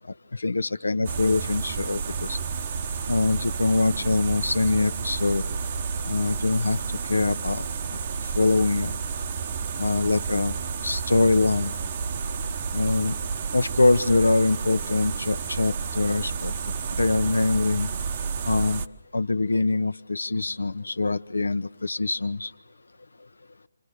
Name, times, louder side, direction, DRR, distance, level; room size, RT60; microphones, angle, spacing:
voice 1, 0.3-2.4 3.1-5.4 6.1-7.6 8.3-9.0 9.8-10.5 10.8-11.7 12.7-13.1 13.5-16.5 17.0-17.9 18.5-18.8 19.1-22.5, left 3 dB, 70° left, 13 dB, 1.0 m, -24 dB
sound 1, 1.0-18.9, right 5 dB, 40° right, 1.1 m, -31 dB
29.0 x 26.5 x 6.7 m, 0.76 s
figure-of-eight pair, 140°, 0 cm